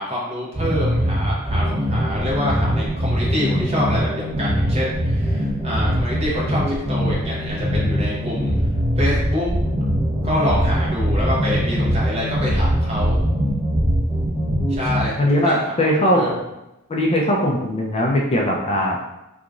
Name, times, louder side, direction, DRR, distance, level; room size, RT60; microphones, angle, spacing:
voice 1, 0.0-8.5 9.0-9.5 10.2-13.2 14.7-15.6 16.1-16.3, equal, 30° right, -5 dB, 1.0 m, -26 dB
sound 1, 0.5-15.0, equal, 5° right, 1.2 m, -21 dB
voice 2, 15.2-16.3 16.9-19.0, equal, 30° left, -1 dB, 0.4 m, -20 dB
2.9 x 2.4 x 3.7 m, 0.91 s
head